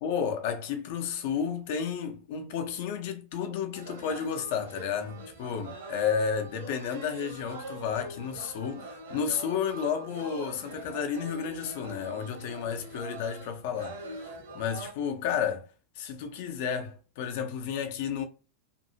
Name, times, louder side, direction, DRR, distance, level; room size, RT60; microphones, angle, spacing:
voice 1, 0.0-15.7 16.0-18.2, left 7 dB, 50° left, 0.6 m, -32 dB
sound 1, 3.7-14.9, right 2 dB, 65° right, 0.9 m, -43 dB
2.7 x 2.6 x 2.7 m
figure-of-eight pair, 90°, 0 cm